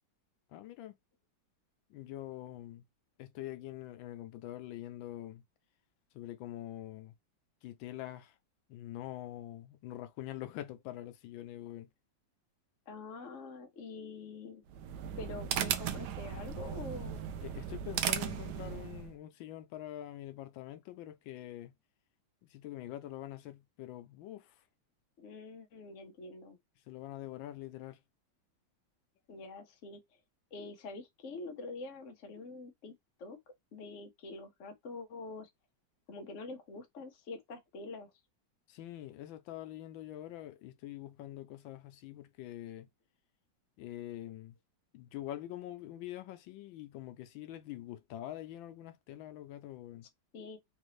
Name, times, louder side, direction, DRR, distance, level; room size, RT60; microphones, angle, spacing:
voice 1, 0.5-0.9 1.9-2.8 3.2-5.4 6.1-7.1 7.6-8.3 8.7-11.9 17.4-21.7 22.4-24.5 26.9-28.0 38.7-42.9 43.8-44.5 44.9-50.1, left 13 dB, 85° left, 1.4 m, -45 dB
voice 2, 12.9-14.6 15.2-17.3 25.2-26.6 29.3-30.0 30.5-32.9 33.2-33.4 33.7-35.5 36.1-38.1 50.3-50.6, left 3 dB, 50° left, 1.0 m, -45 dB
sound 1, 14.7-19.1, right 9 dB, 70° right, 1.1 m, -36 dB
3.9 x 2.6 x 3.1 m
omnidirectional pair, 2.1 m